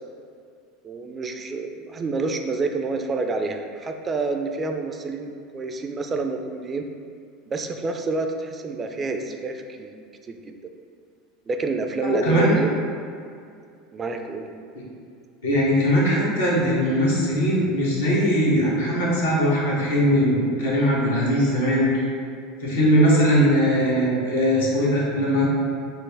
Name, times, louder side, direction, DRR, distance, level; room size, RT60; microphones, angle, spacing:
voice 1, 0.8-6.9 7.5-10.0 10.3-10.5 11.5-12.7 13.9-14.5, right 3 dB, 30° right, 5 dB, 0.3 m, -28 dB
voice 2, 12.0-12.5 15.4-22.1 22.6-25.4, equal, 90° left, -6 dB, 1.0 m, -20 dB
4.3 x 2.0 x 3.3 m, 2.3 s
hypercardioid pair, 85°, 0 cm